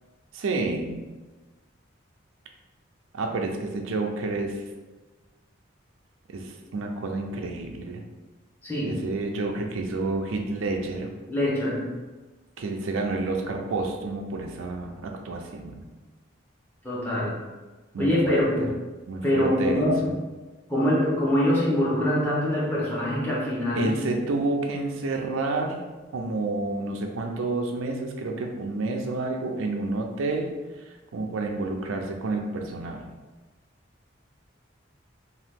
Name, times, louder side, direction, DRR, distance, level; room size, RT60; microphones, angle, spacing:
voice 1, 0.3-1.0 3.1-4.6 6.3-8.0 8.8-11.1 12.6-15.8 17.9-18.7 19.1-20.2 23.7-25.8 26.1-33.0, right 3 dB, 85° right, 3 dB, 0.4 m, -29 dB
voice 2, 8.6-9.0 11.3-11.9 16.8-17.3 18.0-18.7 19.2-20.1 20.7-23.9, left 1 dB, 10° left, -7 dB, 0.7 m, -24 dB
2.8 x 2.3 x 3.4 m, 1.2 s
head